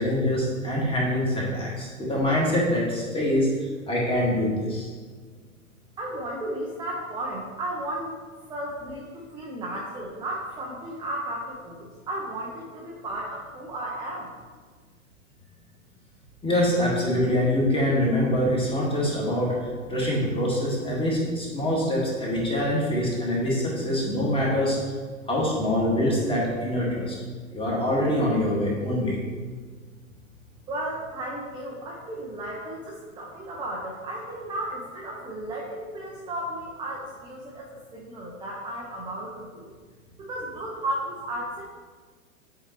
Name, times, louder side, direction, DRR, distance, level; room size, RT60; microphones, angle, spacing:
voice 1, 0.0-4.9 16.4-19.6 19.9-24.8 25.3-27.2 27.5-29.2, left 1 dB, 15° left, -4 dB, 1.8 m, -24 dB
voice 2, 6.0-8.2 8.5-14.3 30.7-39.7 40.2-41.6, right 1 dB, 10° right, -4 dB, 0.7 m, -34 dB
7.8 x 4.6 x 3.0 m, 1.5 s
hypercardioid pair, 115°, 41 cm